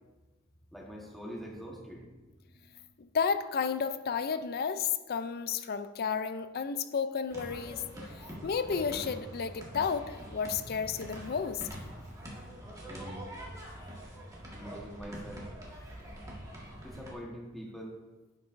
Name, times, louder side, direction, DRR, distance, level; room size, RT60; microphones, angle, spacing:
voice 1, 0.7-2.8 12.9-13.3 14.5-15.5 16.8-18.0, equal, ahead, -2 dB, 1.3 m, -44 dB
voice 2, 3.0-7.8 8.4-11.6, left 6 dB, 45° left, 11 dB, 0.4 m, -32 dB
sound 1, 7.3-17.1, equal, 15° right, 1.6 m, -44 dB
9.3 x 7.4 x 2.6 m, 1.2 s
head